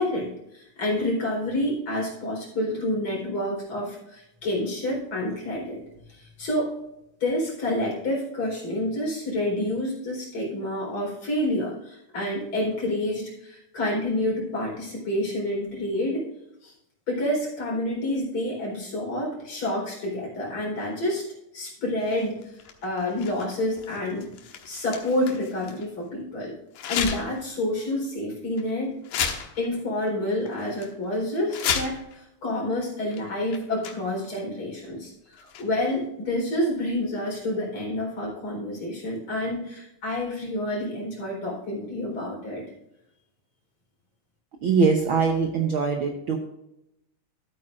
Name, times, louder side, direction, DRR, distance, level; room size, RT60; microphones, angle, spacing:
voice 1, 0.0-5.8 6.1-6.7 7.2-16.2 16.6-16.7 17.1-21.2 21.5-22.5 22.8-24.3 24.6-26.5 26.9-29.0 29.5-42.6, left 1 dB, 40° left, -3 dB, 5.0 m, -28 dB
sound 1, 22.0-25.9 26.7-27.4 27.8-28.0 28.6-28.7 29.0-29.8 30.1-30.2 30.5-30.9 31.4-32.2 33.1-33.2 33.5-34.3 35.3-35.9, left 7 dB, 75° left, 2.7 m, -33 dB
voice 2, 44.6-46.4, right 5 dB, 80° right, 2 dB, 1.1 m, -22 dB
14.0 x 8.7 x 2.5 m, 0.83 s
omnidirectional pair, 3.8 m